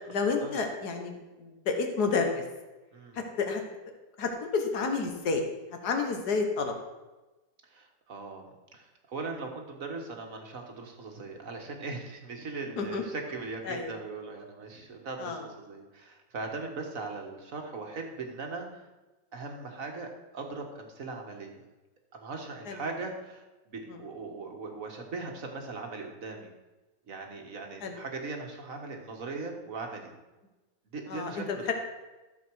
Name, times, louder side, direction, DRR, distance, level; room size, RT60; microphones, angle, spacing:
voice 1, 0.1-2.4 3.2-3.6 4.2-5.4 5.8-6.7 12.8-13.0 13.7-13.9 15.2-15.4 22.7-22.8 23.9-24.0 27.8-27.9 31.1-31.7, left 4 dB, 60° left, 4 dB, 1.9 m, -30 dB
voice 2, 7.7-18.9 19.3-21.6 22.1-26.5 27.1-30.1 30.9-31.5, right 3 dB, 50° right, 2 dB, 1.8 m, -39 dB
13.5 x 7.2 x 4.7 m, 1.1 s
omnidirectional pair, 2.0 m